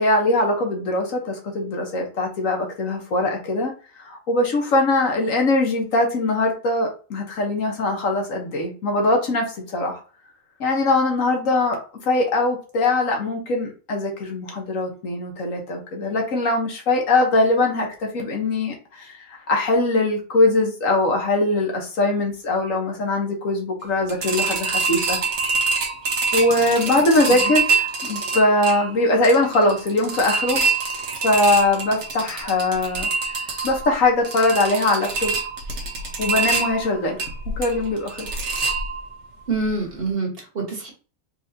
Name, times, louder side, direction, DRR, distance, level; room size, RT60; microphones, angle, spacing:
voice 1, 0.0-3.7 4.0-10.0 10.6-11.8 12.0-19.2 19.5-25.2 26.3-30.6 31.2-33.1 33.6-35.3 36.2-37.2 37.6-38.3, left 2 dB, 85° left, 2 dB, 1.6 m, -21 dB
sound 1, 24.1-39.3 39.6-39.7 40.1-40.2, right 4 dB, 65° right, 1.2 m, -26 dB
voice 2, 39.5-40.9, right 3 dB, 45° right, -1 dB, 1.6 m, -26 dB
4.4 x 3.3 x 2.8 m, 0.36 s
omnidirectional pair, 1.3 m